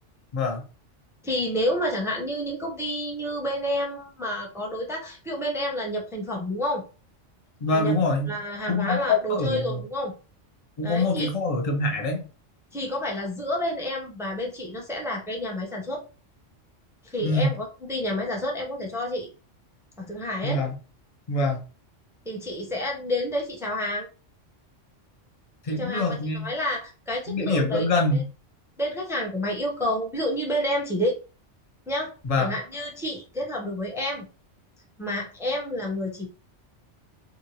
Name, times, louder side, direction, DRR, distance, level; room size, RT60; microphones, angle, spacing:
voice 1, 1.2-6.8 7.7-7.9 8.3-10.1 10.8-11.3 12.7-16.0 17.0-19.3 20.0-20.6 22.3-24.1 25.7-27.9 28.1-28.2 28.8-31.2 31.9-34.3 35.0-36.3, equal, 5° right, 0.5 m, -29 dB
voice 2, 7.6-8.3 8.7-9.8 10.8-12.2 17.2-17.5 20.4-20.7 21.3-21.6 25.6-26.5 27.3-28.2 32.3-32.5, left 2 dB, 35° left, 0.6 m, -25 dB
2.8 x 2.5 x 2.7 m
omnidirectional pair, 1.2 m